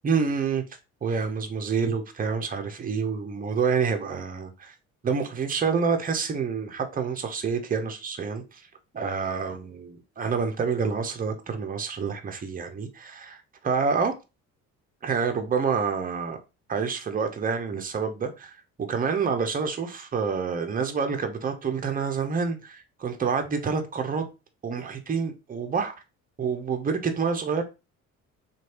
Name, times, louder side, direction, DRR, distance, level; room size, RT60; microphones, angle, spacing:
voice 1, 0.0-0.6 1.0-4.7 5.0-8.6 8.9-14.2 15.0-16.4 16.7-18.5 18.8-24.2 24.6-25.9 26.4-27.6, right 5 dB, 20° right, 0.7 m, -28 dB
3.1 x 2.5 x 2.9 m
hypercardioid pair, 55°, 41 cm